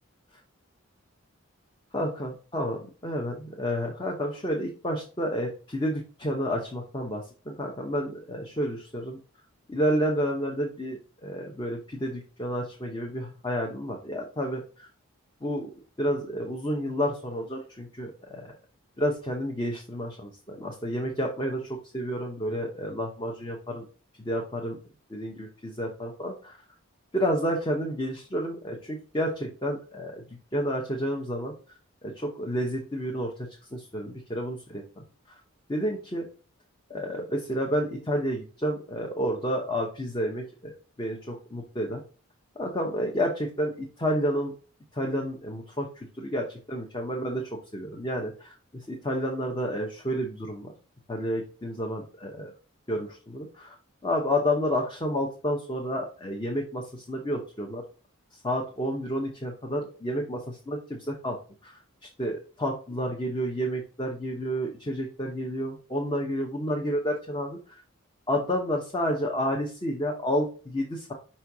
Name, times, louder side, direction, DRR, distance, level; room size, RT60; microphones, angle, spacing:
voice 1, 1.9-9.2 9.7-14.9 15.4-15.7 16.0-18.5 19.0-23.9 24.2-24.8 25.1-26.6 27.1-30.2 30.5-31.5 32.0-35.0 35.7-36.3 36.9-40.7 41.0-42.0 42.6-44.5 44.9-45.9 46.2-50.7 51.1-52.5 52.9-53.7 54.0-57.8 58.4-61.7 62.2-67.6 68.3-71.1, equal, 20° left, 1 dB, 0.8 m, -30 dB
5.3 x 4.4 x 4.7 m, 0.37 s
head